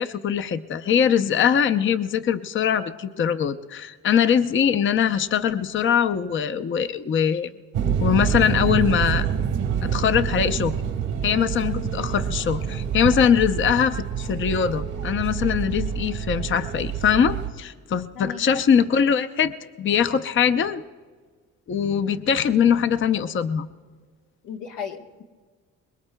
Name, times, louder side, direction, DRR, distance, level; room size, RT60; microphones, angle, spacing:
voice 1, 0.0-7.5 8.0-9.3 9.8-10.7 11.2-20.8 21.7-23.7, left 8 dB, 40° left, 9 dB, 0.6 m, -22 dB
sound 1, 7.7-17.5, right 8 dB, 80° right, 1.3 m, -27 dB
voice 2, 24.4-25.2, left 7 dB, 85° left, 3 dB, 1.2 m, -35 dB
24.0 x 21.5 x 2.2 m, 1.6 s
cardioid pair, 90°, 30 cm